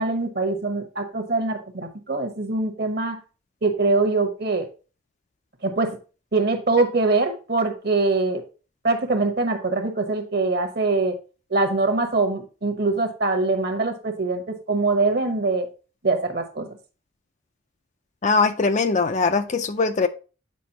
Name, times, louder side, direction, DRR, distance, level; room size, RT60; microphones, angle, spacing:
voice 1, 0.0-3.2 3.6-4.7 5.6-6.0 6.3-8.4 8.8-11.2 11.5-15.7 16.0-16.7, right 3 dB, 50° right, 1.1 m, -23 dB
voice 2, 18.2-20.1, left 4 dB, 35° left, 0.4 m, -21 dB
8.4 x 5.1 x 2.9 m
head